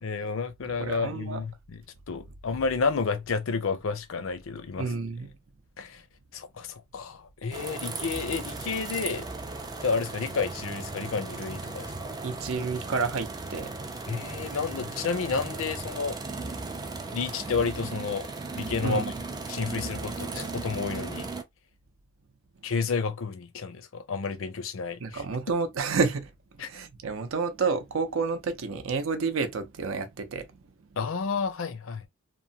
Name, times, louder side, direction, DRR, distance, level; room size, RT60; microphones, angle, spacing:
voice 1, 0.0-4.9 5.8-6.0 6.3-9.3 9.8-11.9 14.1-16.2 17.1-18.3 18.5-19.0 19.5-21.3 22.6-25.2 26.6-26.7 31.0-32.0, left 5 dB, 75° left, 0.5 m, -31 dB
voice 2, 0.8-1.4 4.8-5.3 12.2-13.7 18.8-19.1 25.0-30.6, right 4 dB, 80° right, 0.6 m, -30 dB
sound 1, 7.5-21.4, right 3 dB, 20° right, 0.3 m, -37 dB
3.0 x 2.1 x 2.6 m
head